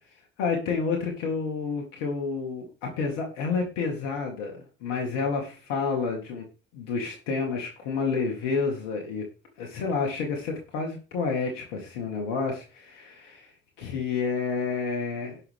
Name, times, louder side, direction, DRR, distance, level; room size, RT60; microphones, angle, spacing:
voice 1, 0.4-6.4 6.7-9.2 9.6-15.4, left 5 dB, 85° left, 1 dB, 2.1 m, -29 dB
17.5 x 6.0 x 3.7 m, 0.33 s
hypercardioid pair, 50°, 38 cm